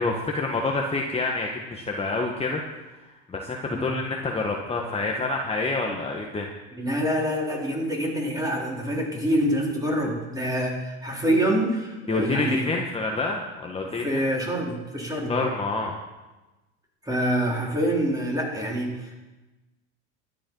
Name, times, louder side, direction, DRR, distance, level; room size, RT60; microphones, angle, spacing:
voice 1, 0.0-6.5 12.1-14.2 15.3-15.9, left 3 dB, 15° left, 0 dB, 1.5 m, -28 dB
voice 2, 6.8-12.7 14.0-15.3 17.1-19.1, equal, 10° right, -2 dB, 4.1 m, -26 dB
12.5 x 10.5 x 5.6 m, 1.1 s
hypercardioid pair, 100°, 35 cm